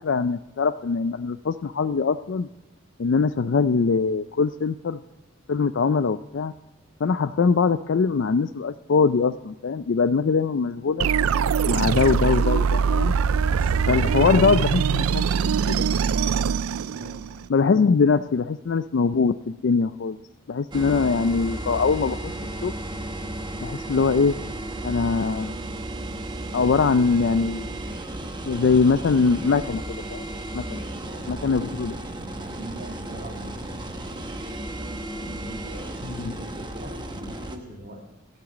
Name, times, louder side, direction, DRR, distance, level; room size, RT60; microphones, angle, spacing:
voice 1, 0.0-2.5 3.0-5.0 5.5-6.5 7.0-11.1 11.7-13.1 13.9-15.9 17.5-20.2 20.5-22.3 22.6-22.7 23.6-24.4 24.8-25.6 26.5-27.7 28.5-30.3 30.5-30.6 31.3-31.9 36.2-36.3, left 5 dB, 60° left, 12 dB, 0.4 m, -22 dB
sound 1, 11.0-17.5, right 6 dB, 90° right, 0.4 m, -22 dB
voice 2, 13.1-14.7 15.0-15.4 16.9-17.5 30.7-31.8 32.2-33.9 35.1-38.2, right 1 dB, 45° right, -3 dB, 2.0 m, -42 dB
sound 2, 20.7-37.6, right 1 dB, 20° right, 1.0 m, -34 dB
13.5 x 8.8 x 7.1 m, 1.0 s
head